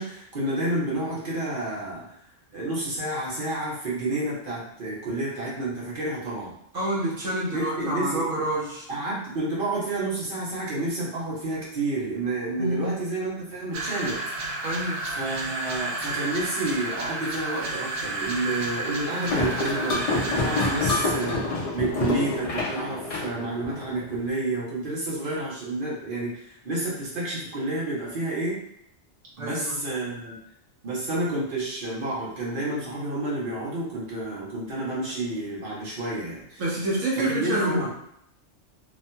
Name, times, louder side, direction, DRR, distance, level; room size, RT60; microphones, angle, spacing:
voice 1, 0.0-2.0 2.5-6.5 7.5-8.3 8.9-14.2 15.2-28.6 29.4-30.4 30.8-36.6 37.2-37.9, right 2 dB, 50° right, -6 dB, 1.1 m, -30 dB
voice 2, 6.7-8.9 12.6-12.9 14.6-15.0 29.4-29.8 36.6-37.9, right 1 dB, 90° right, -5 dB, 1.3 m, -27 dB
sound 1, 13.7-21.3, right 2 dB, 70° right, 0.8 m, -32 dB
sound 2, 19.3-24.2, left 2 dB, 60° left, 0.4 m, -27 dB
2.9 x 2.7 x 2.2 m, 0.74 s
omnidirectional pair, 1.2 m